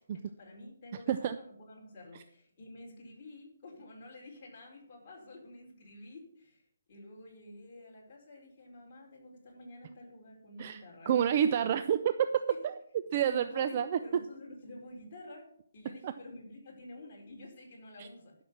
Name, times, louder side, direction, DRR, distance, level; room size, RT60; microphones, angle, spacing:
voice 1, 0.1-11.1 12.5-12.6 13.3-15.5 15.7-18.3, left 2 dB, 30° left, -4 dB, 4.5 m, -50 dB
voice 2, 10.6-12.1 12.6-12.7 13.1-14.0 16.0-16.1 18.0-18.1, right 9 dB, 30° right, 10 dB, 0.4 m, -29 dB
12.0 x 6.0 x 7.3 m, 0.66 s
hypercardioid pair, 170°, 0 cm